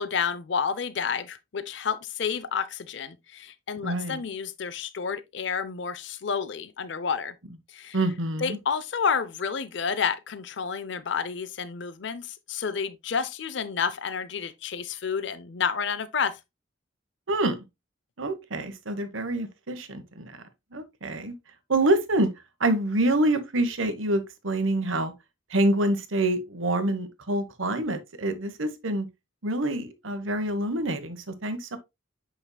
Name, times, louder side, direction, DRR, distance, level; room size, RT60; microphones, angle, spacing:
voice 1, 0.0-7.3 7.7-8.0 8.4-16.4, left 6 dB, 65° left, 0.5 m, -30 dB
voice 2, 3.8-4.2 7.9-8.6 17.3-17.6 18.2-20.4 20.7-21.3 21.7-22.3 22.6-25.1 25.5-29.0 29.4-31.8, right 1 dB, 85° right, 1.2 m, -26 dB
8.2 x 5.6 x 2.3 m
head